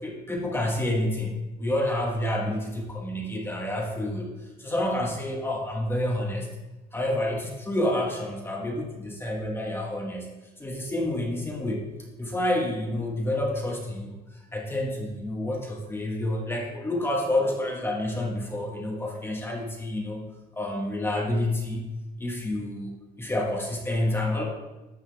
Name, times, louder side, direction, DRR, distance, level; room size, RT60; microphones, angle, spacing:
voice 1, 0.0-4.3 4.6-6.5 6.9-11.8 12.2-20.2 20.5-21.9 22.2-22.9 23.2-24.4, left 1 dB, 15° left, -1 dB, 1.4 m, -29 dB
9.8 x 5.8 x 3.4 m, 1.1 s
cardioid pair, 110°, 17 cm